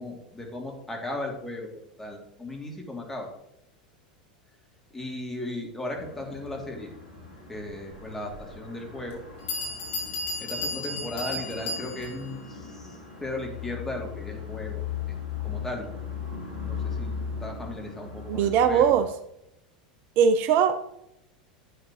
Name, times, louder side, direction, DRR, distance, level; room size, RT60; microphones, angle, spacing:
voice 1, 0.0-1.7 2.0-3.3 4.9-6.9 7.5-9.2 10.4-15.9 16.6-18.9, left 1 dB, 10° left, 0 dB, 2.9 m, -36 dB
sound 1, 5.9-19.1, left 6 dB, 85° left, 3.8 m, -38 dB
Bell, 9.1-9.2 9.5-12.3, left 2 dB, 50° left, 3.9 m, -33 dB
voice 2, 18.3-19.1 20.2-20.8, right 7 dB, 50° right, 10 dB, 0.6 m, -20 dB
11.5 x 8.7 x 3.1 m, 0.80 s
hypercardioid pair, 85°, 4 cm